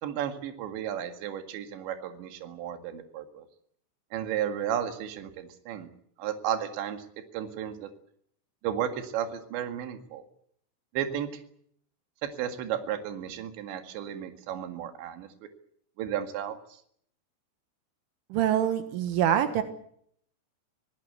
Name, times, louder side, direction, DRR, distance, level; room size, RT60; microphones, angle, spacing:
voice 1, 0.0-3.5 4.1-5.9 6.2-7.1 7.3-7.9 8.6-10.2 10.9-11.3 12.2-15.3 16.0-16.6, right 10 dB, 70° right, 7 dB, 4.1 m, -33 dB
voice 2, 18.3-19.6, right 10 dB, 85° right, 9 dB, 4.0 m, -25 dB
25.5 x 18.5 x 8.3 m, 0.66 s
omnidirectional pair, 5.5 m